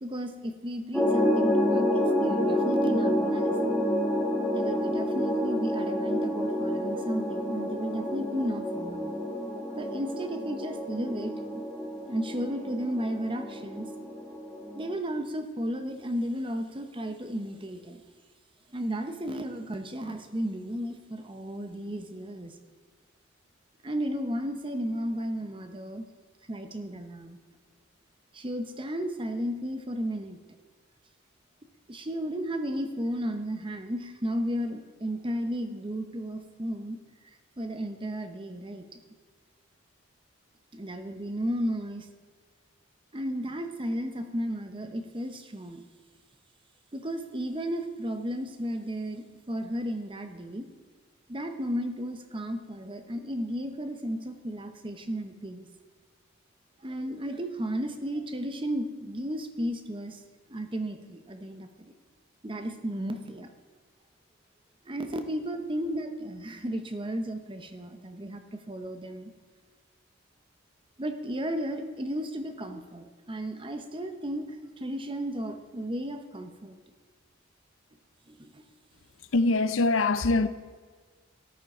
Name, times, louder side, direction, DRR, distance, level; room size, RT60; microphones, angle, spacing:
voice 1, 0.0-3.8 4.5-9.1 9.8-11.4 12.1-13.9 14.7-18.0 18.7-22.5 23.8-26.1 26.5-27.4 28.3-30.4 31.9-37.0 37.6-39.0 40.7-42.1 43.1-45.9 46.9-50.7 51.3-55.7 56.8-60.2 60.5-61.9 62.4-63.5 64.8-69.3 71.0-76.8 78.3-78.6, equal, 25° right, 0.9 m, -34 dB
sound 1, 0.9-14.9, equal, ahead, 1.3 m, -29 dB
voice 2, 79.2-80.5, left 3 dB, 70° left, 0.6 m, -23 dB
13.5 x 11.0 x 4.4 m
head